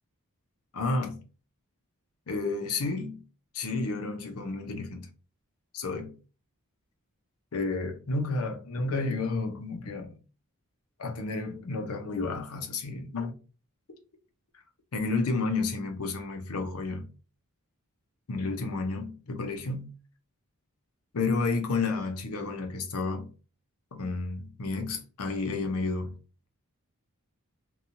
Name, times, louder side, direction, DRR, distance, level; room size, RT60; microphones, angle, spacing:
voice 1, 0.7-1.2 2.3-3.2 3.5-5.1 5.7-6.1 7.5-10.2 11.0-13.3 14.9-17.1 18.3-19.9 21.1-23.3 23.9-26.1, left 3 dB, 75° left, 0.6 m, -31 dB
2.9 x 2.3 x 2.6 m
head